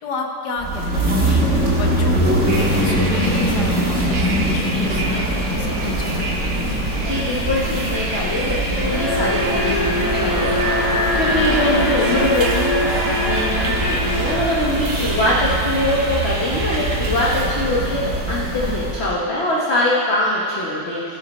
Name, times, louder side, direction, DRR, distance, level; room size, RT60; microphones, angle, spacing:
voice 1, 0.0-6.4 15.5-15.6, left 3 dB, 65° left, 1 dB, 1.6 m, -30 dB
sound 1, 0.6-19.1, right 1 dB, 40° right, 1.9 m, -23 dB
Bus, 2.5-17.4, right 2 dB, 60° right, 1.9 m, -30 dB
voice 2, 7.0-21.2, left 1 dB, 40° left, -6 dB, 1.3 m, -22 dB
Alarm, 8.8-15.9, left 1 dB, 20° left, 2.5 m, -24 dB
16.5 x 5.7 x 4.3 m, 2.3 s
omnidirectional pair, 2.0 m